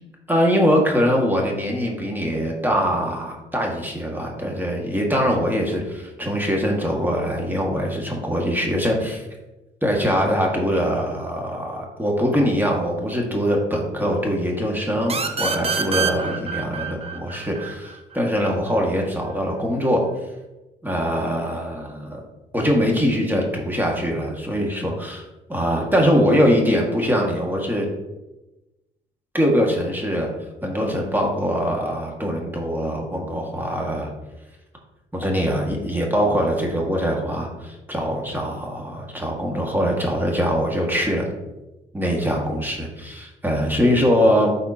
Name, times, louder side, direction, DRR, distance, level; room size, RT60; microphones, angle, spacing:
voice 1, 0.3-9.2 9.8-20.0 20.8-22.2 22.5-25.2 25.5-27.9 29.3-30.3 30.6-34.1 35.1-41.2 41.9-44.5, equal, 10° right, -1 dB, 1.8 m, -22 dB
sound 1, 15.1-18.5, right 5 dB, 30° right, 0.8 m, -26 dB
11.5 x 4.2 x 2.8 m, 1.0 s
cardioid pair, 90°, 20 cm